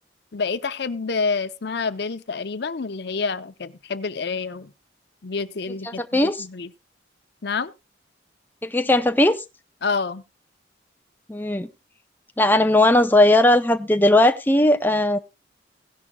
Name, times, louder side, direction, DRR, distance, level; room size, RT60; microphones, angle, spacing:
voice 1, 0.3-4.7 5.2-6.7 7.4-7.7 9.8-10.2, left 4 dB, 60° left, 0.7 m, -28 dB
voice 2, 5.9-6.4 8.6-9.4 11.3-11.7 12.4-15.2, left 1 dB, 10° left, 0.5 m, -18 dB
16.5 x 11.0 x 2.3 m
head